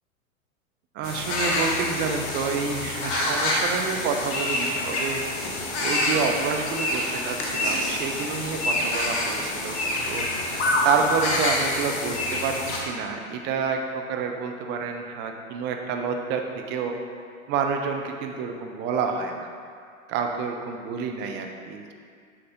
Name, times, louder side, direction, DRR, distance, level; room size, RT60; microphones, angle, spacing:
voice 1, 0.9-5.2 5.8-12.1 12.4-16.4 16.7-16.9 17.5-19.5 20.1-21.9, right 5 dB, 25° right, 3 dB, 0.6 m, -29 dB
sound 1, 1.0-12.8, left 1 dB, 50° left, 1.4 m, -27 dB
7.1 x 4.8 x 3.7 m, 2.2 s
hypercardioid pair, 105°, 42 cm